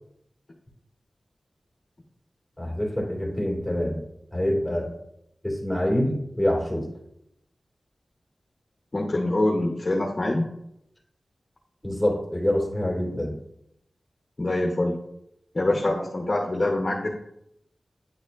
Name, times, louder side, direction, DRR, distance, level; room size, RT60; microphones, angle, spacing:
voice 1, 2.6-4.0 4.3-4.9 5.4-6.9 11.8-13.3, left 1 dB, ahead, -3 dB, 2.3 m, -26 dB
voice 2, 8.9-10.5 14.4-15.0 15.5-17.1, left 1 dB, 40° left, 0 dB, 0.8 m, -24 dB
9.1 x 4.2 x 2.5 m, 0.78 s
wide cardioid pair, 65°, 0 cm